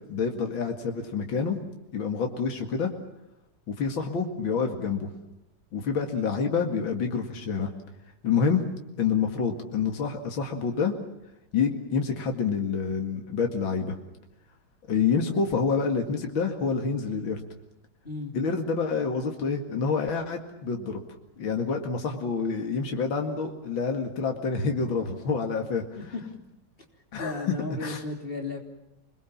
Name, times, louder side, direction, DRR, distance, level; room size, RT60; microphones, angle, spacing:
voice 1, 0.1-1.6 1.9-2.9 3.7-5.1 5.7-7.7 8.2-8.6 9.0-11.0 11.5-13.9 14.9-17.4 18.3-21.0 21.4-25.8 27.1-28.0, left 5 dB, 70° left, 3 dB, 2.9 m, -27 dB
voice 2, 27.2-28.6, left 3 dB, 25° left, 2 dB, 3.8 m, -34 dB
28.0 x 22.0 x 7.3 m, 0.88 s
omnidirectional pair, 2.2 m